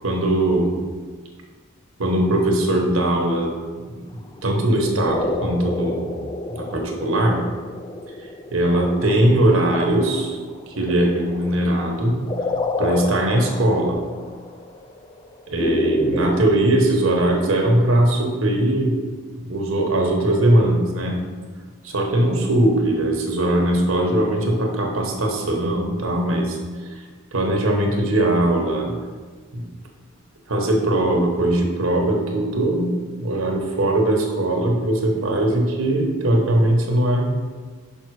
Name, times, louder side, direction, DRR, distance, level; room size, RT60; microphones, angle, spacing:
voice 1, 0.0-0.8 2.0-3.5 3.9-4.0 4.4-6.2 6.5-7.4 8.5-10.4 10.7-12.2 12.8-14.0 15.5-19.0 19.4-21.2 21.8-26.5 27.3-29.0 29.5-29.7 30.5-37.3, right 1 dB, 75° right, 2 dB, 1.1 m, -20 dB
sound 1, 4.4-16.4, left 1 dB, 20° left, 0.3 m, -29 dB
5.5 x 5.5 x 4.7 m, 1.5 s
head